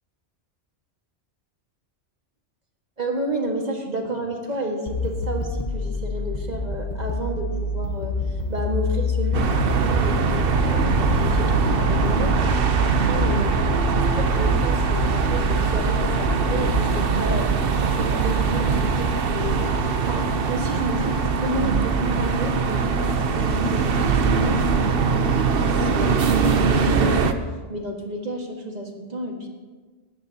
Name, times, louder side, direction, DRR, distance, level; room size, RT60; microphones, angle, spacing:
voice 1, 3.0-13.5 13.9-17.5 17.8-19.6 20.1-27.3 27.7-29.5, right 1 dB, 35° right, 1 dB, 1.7 m, -31 dB
sound 1, 4.9-16.8, left 3 dB, 40° left, 1.0 m, -28 dB
sound 2, 9.3-27.3, right 5 dB, 55° right, 0.9 m, -22 dB
sound 3, 10.3-21.5, left 1 dB, 75° right, 5.2 m, -40 dB
19.0 x 13.5 x 2.8 m, 1.3 s
omnidirectional pair, 1.2 m